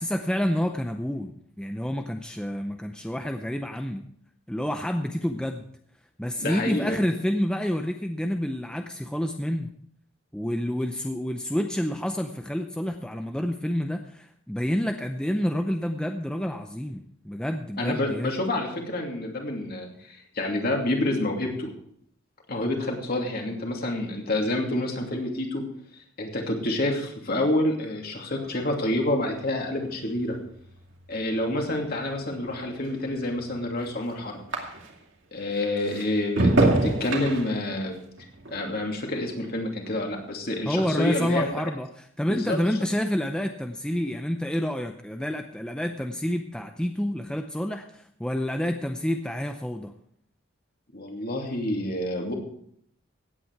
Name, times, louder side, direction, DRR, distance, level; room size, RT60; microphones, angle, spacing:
voice 1, 0.0-4.1 4.5-5.7 6.2-9.7 10.3-18.3 40.7-49.9, equal, 5° left, 5 dB, 0.6 m, -28 dB
voice 2, 6.4-7.0 17.8-21.7 22.5-25.6 26.2-30.4 31.1-34.4 35.3-37.9 38.5-41.5 42.3-42.6 50.9-52.3, left 1 dB, 45° left, 1 dB, 2.7 m, -28 dB
sound 1, 28.4-35.2 35.5-40.1 40.4-40.9, right 2 dB, 65° right, 2.4 m, -30 dB
16.0 x 9.2 x 4.7 m, 0.67 s
head